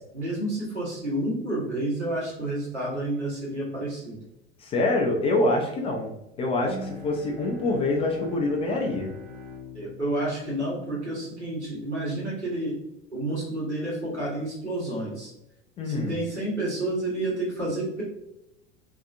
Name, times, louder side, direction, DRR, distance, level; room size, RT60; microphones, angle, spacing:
voice 1, 0.1-4.2 9.7-12.7 13.1-15.3 15.8-18.0, right 1 dB, 90° right, -6 dB, 1.2 m, -30 dB
voice 2, 4.6-6.1 6.4-9.1 15.8-16.1, left 2 dB, 20° left, 1 dB, 0.3 m, -25 dB
Bowed string instrument, 6.5-12.0, left 2 dB, 55° right, 1.2 m, -43 dB
2.7 x 2.4 x 2.4 m, 0.87 s
figure-of-eight pair, 80°, 33 cm